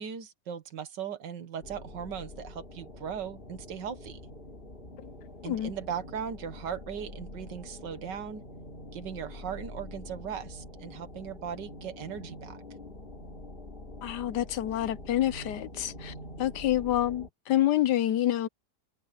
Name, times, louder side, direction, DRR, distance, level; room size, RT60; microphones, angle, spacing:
voice 1, 0.0-4.2 5.4-8.4 8.9-12.6, right 8 dB, 85° right, 2.0 m, -38 dB
sound 1, 1.6-17.3, left 1 dB, 30° left, 3.3 m, -45 dB
voice 2, 5.0-5.7 14.0-18.5, left 13 dB, 75° left, 1.3 m, -28 dB
omnidirectional pair, 1.8 m